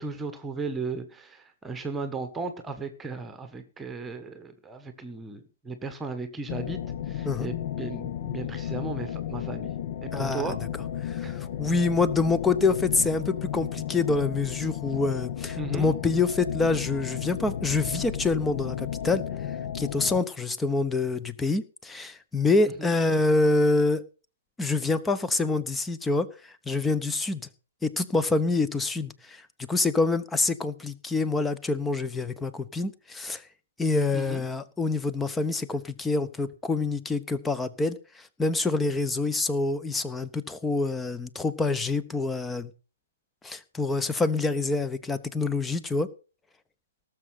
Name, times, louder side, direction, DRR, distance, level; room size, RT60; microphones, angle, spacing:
voice 1, 0.0-6.8 7.1-9.7 10.0-10.6 11.2-11.3 15.6-15.9 22.6-22.9 34.1-34.4, right 3 dB, 10° right, 1.5 m, -36 dB
sound 1, 6.5-20.2, left 9 dB, 40° left, 1.1 m, -33 dB
voice 2, 10.1-10.5 11.0-19.2 19.7-24.0 24.6-27.5 27.8-33.4 33.8-42.7 43.4-46.1, left 3 dB, 5° left, 0.9 m, -26 dB
18.5 x 7.4 x 5.9 m
figure-of-eight pair, 125°, 0 cm